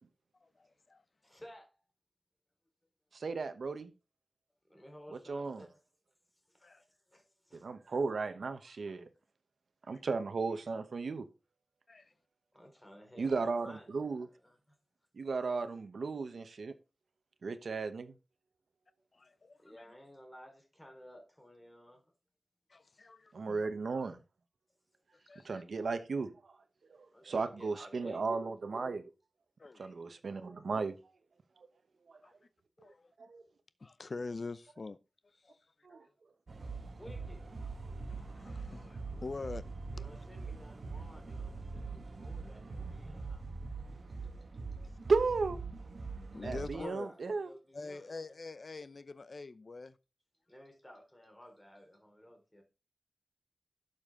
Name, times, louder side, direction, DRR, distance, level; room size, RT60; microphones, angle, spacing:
voice 1, 0.4-1.0 6.6-6.8 9.9-10.0 11.9-12.1 19.1-19.9 22.7-23.7 25.3-25.5 29.6-29.9 32.2-32.3 32.8-33.1 33.8-35.0 35.4-35.6 38.1-39.6 46.3-47.1 47.7-50.0, left 3 dB, 55° left, 0.6 m, -45 dB
voice 2, 1.2-1.8 4.7-5.7 6.5-7.7 10.0-10.1 12.5-14.8 19.6-22.0 27.1-28.2 37.0-37.4 39.9-43.4 46.3-48.3 50.5-52.6, equal, 10° left, 4.5 m, -55 dB
voice 3, 3.1-3.9 5.1-5.7 7.6-9.1 9.9-11.3 13.2-14.3 15.1-16.7 17.4-18.1 23.3-24.2 25.4-26.6 26.9-29.0 29.8-30.9 31.6-31.7 32.1-32.2 33.2-33.4 35.8-36.0 45.1-45.6 46.4-47.5, right 4 dB, 90° right, 1.1 m, -35 dB
sound 1, 36.5-46.8, right 3 dB, 70° right, 1.6 m, -43 dB
12.0 x 7.1 x 3.8 m
wide cardioid pair, 90°, 0 cm